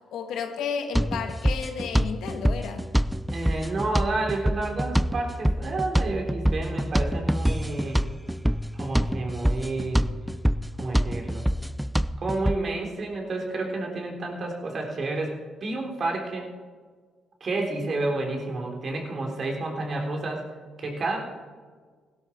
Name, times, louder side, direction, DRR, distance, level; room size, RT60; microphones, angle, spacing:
voice 1, 0.1-2.8, left 6 dB, 80° left, 5 dB, 1.8 m, -32 dB
sound 1, 0.9-12.6, equal, ahead, 0.4 m, -26 dB
voice 2, 3.3-8.1 8.7-10.0 10.8-11.4 12.2-16.5 17.4-20.4 20.8-21.2, right 2 dB, 45° right, 1 dB, 3.6 m, -30 dB
16.5 x 12.0 x 4.5 m, 1.6 s
cardioid pair, 90°, 0 cm